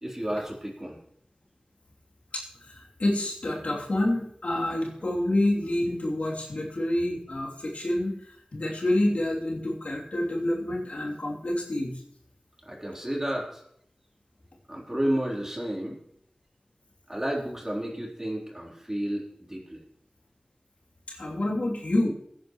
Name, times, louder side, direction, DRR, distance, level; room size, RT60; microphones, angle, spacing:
voice 1, 0.0-1.0 12.6-13.6 14.7-16.0 17.1-19.8, right 1 dB, 20° right, -2 dB, 3.8 m, -31 dB
voice 2, 2.3-12.0 21.1-22.1, left 1 dB, 75° left, -2 dB, 3.0 m, -28 dB
20.0 x 9.9 x 3.1 m, 0.71 s
wide cardioid pair, 60°, 2 cm